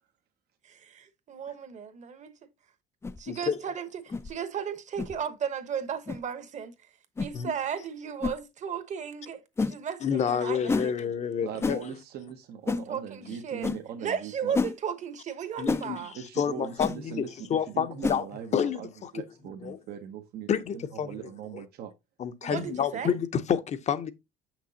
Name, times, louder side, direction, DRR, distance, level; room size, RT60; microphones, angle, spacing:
voice 1, 0.6-2.3 3.2-6.7 7.2-10.9 12.7-13.7 14.0-16.1 22.4-23.1, right 7 dB, 45° right, 1.1 m, -35 dB
sound 1, 3.0-3.2 4.1-4.3 5.0-5.1 6.1-6.2 7.2-7.3 8.2-8.4 9.6-9.8 10.7-10.9 11.6-11.8 12.7-12.8 13.6-13.8 14.5-14.7 15.7-15.9 16.8-17.0 18.0-18.2, left 4 dB, 15° left, 0.4 m, -28 dB
voice 2, 3.3-3.6 7.3-7.5 10.0-11.8 13.2-13.4 15.6-18.2 18.5-19.1 19.6-19.8 20.5-21.6 22.2-24.1, left 7 dB, 40° left, 0.7 m, -29 dB
voice 3, 11.4-14.6 16.1-18.9 19.1-21.9 22.5-22.7 22.9-23.0, right 8 dB, 70° right, 0.8 m, -40 dB
6.5 x 6.0 x 2.8 m
cardioid pair, 110°, 17 cm